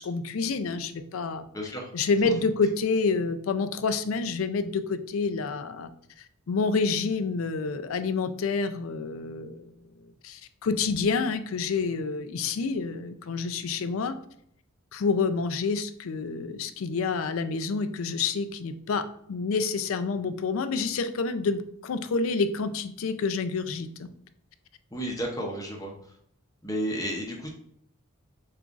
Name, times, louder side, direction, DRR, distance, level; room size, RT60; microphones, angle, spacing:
voice 1, 0.0-1.5 1.9-5.9 6.2-9.7 10.2-14.2 14.9-24.1, left 4 dB, 75° left, 11 dB, 0.4 m, -28 dB
voice 2, 1.5-1.9 2.2-2.3 24.9-25.9 26.6-27.5, equal, 15° left, 0 dB, 0.6 m, -32 dB
6.8 x 2.4 x 2.4 m, 0.69 s
head